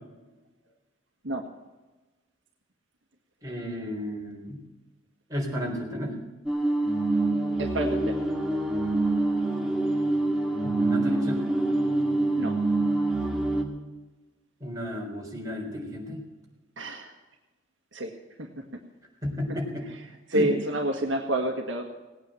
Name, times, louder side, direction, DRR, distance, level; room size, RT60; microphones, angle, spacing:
voice 1, 3.4-4.6 5.3-6.2 10.6-11.4 14.6-16.2 19.2-19.9 20.3-20.5, equal, 20° right, -2 dB, 4.1 m, -33 dB
sound 1, 6.5-13.6, right 2 dB, ahead, 2.0 m, -25 dB
voice 2, 7.6-8.2 12.4-12.6 16.8-17.1 17.9-18.1 18.4-18.5 20.1-21.8, right 1 dB, 70° right, 3 dB, 1.6 m, -28 dB
18.5 x 9.0 x 7.7 m, 1.1 s
head